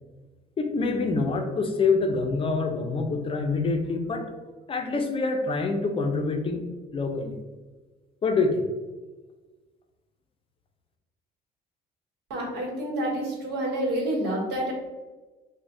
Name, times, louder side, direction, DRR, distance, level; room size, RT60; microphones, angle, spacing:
voice 1, 0.6-4.3 4.7-6.6 6.9-7.4 8.2-8.7, left 3 dB, 35° left, 5 dB, 0.4 m, -26 dB
voice 2, 12.3-14.7, right 1 dB, 80° right, -1 dB, 1.0 m, -28 dB
4.5 x 2.1 x 2.6 m, 1.2 s
cardioid pair, 110°, 17 cm